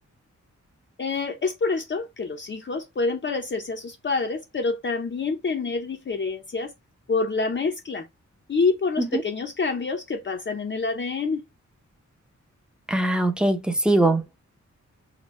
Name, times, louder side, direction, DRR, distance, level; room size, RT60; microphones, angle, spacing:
voice 1, 1.0-6.7 7.1-8.1 8.5-11.4, left 4 dB, 40° left, 0.6 m, -27 dB
voice 2, 12.9-14.4, right 1 dB, 5° right, 0.6 m, -22 dB
4.0 x 2.2 x 3.5 m
wide cardioid pair, 140°, 30 cm